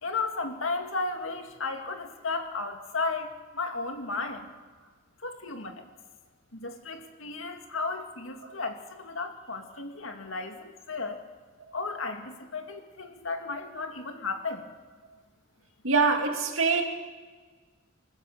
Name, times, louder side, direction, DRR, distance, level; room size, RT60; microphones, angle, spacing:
voice 1, 0.0-4.5 5.2-5.9 6.5-11.2 11.7-14.7, left 3 dB, 80° left, 2.3 m, -34 dB
voice 2, 15.8-16.8, right 4 dB, 85° right, 2.6 m, -24 dB
26.0 x 14.5 x 6.9 m
head